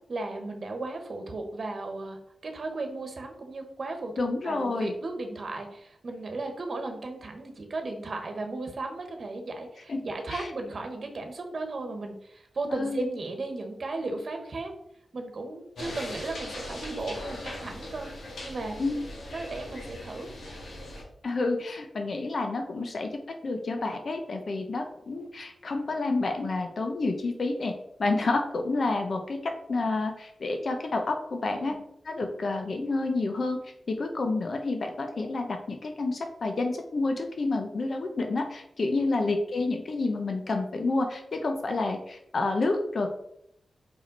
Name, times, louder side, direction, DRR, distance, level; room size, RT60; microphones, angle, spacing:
voice 1, 0.1-4.1 4.4-14.7 15.1-18.1 18.4-18.8 19.3-20.3 31.5-31.8 39.0-39.2, right 2 dB, 60° right, 4 dB, 1.3 m, -35 dB
voice 2, 4.2-4.9 9.9-10.0 10.3-10.5 12.7-13.1 18.8-18.9 21.2-23.1 23.4-27.7 28.0-31.8 32.1-43.1, left 3 dB, 65° left, 4 dB, 0.9 m, -29 dB
sound 1, 15.8-21.0, left 1 dB, 90° left, 2.0 m, -40 dB
5.1 x 5.0 x 4.0 m, 0.74 s
cardioid pair, 70°, 0 cm